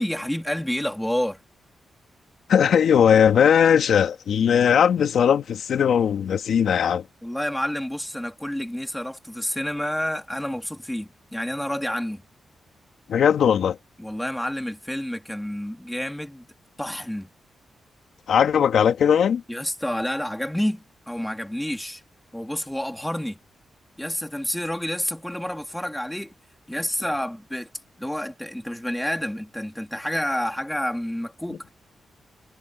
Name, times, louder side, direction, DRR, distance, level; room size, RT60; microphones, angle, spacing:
voice 1, 0.0-1.4 7.2-12.2 14.0-16.4 16.8-17.3 19.5-22.0 22.3-23.4 24.0-26.3 26.7-27.7 28.0-31.7, equal, 5° left, 2.8 m, -29 dB
voice 2, 2.5-7.0 13.1-13.8 18.3-19.4, left 8 dB, 75° left, 2.0 m, -19 dB
cardioid pair, 100°, 0 cm